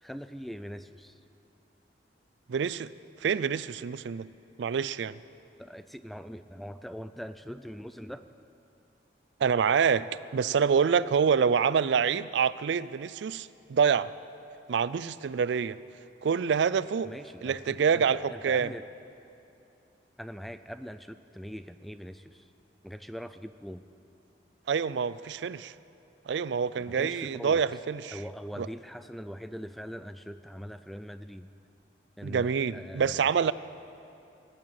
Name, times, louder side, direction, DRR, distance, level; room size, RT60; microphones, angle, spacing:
voice 1, 0.0-1.2 5.6-8.3 17.0-18.9 20.2-22.5 22.8-23.8 26.8-27.6 28.1-31.5 32.2-33.3, equal, ahead, 11 dB, 0.3 m, -42 dB
voice 2, 2.5-2.9 3.2-4.3 4.6-5.2 9.4-14.1 14.7-15.8 16.2-17.1 17.4-18.7 24.7-25.7 26.3-28.2 28.6-28.7 32.2-33.5, right 6 dB, 75° right, 17 dB, 0.4 m, -26 dB
17.5 x 9.0 x 8.7 m, 2.7 s
head